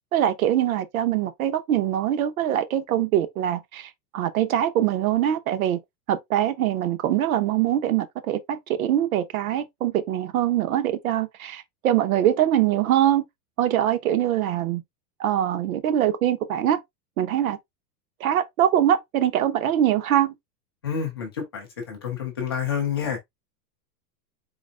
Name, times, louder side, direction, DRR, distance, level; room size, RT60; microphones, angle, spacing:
voice 1, 0.1-5.8 6.1-13.3 13.6-14.8 15.2-16.8 17.2-17.6 18.2-20.3, right 11 dB, 60° right, 0.8 m, -23 dB
voice 2, 20.8-23.2, left 7 dB, 15° left, 0.4 m, -29 dB
4.1 x 4.0 x 2.2 m
supercardioid pair, 180°, 48 cm